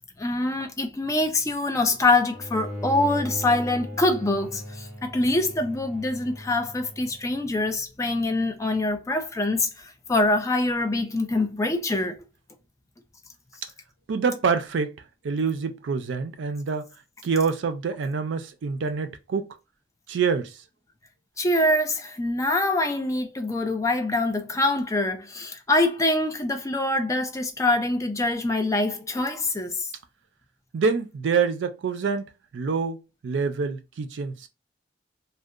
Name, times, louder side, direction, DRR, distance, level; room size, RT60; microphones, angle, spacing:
voice 1, 0.2-12.2 21.4-29.9, left 2 dB, 15° left, 0.4 m, -24 dB
Bowed string instrument, 2.3-7.5, left 1 dB, 5° right, 0.8 m, -38 dB
voice 2, 14.1-14.9 15.2-16.9 17.2-19.6 20.1-20.6 30.7-34.5, right 5 dB, 85° right, 0.4 m, -26 dB
2.7 x 2.1 x 2.4 m
head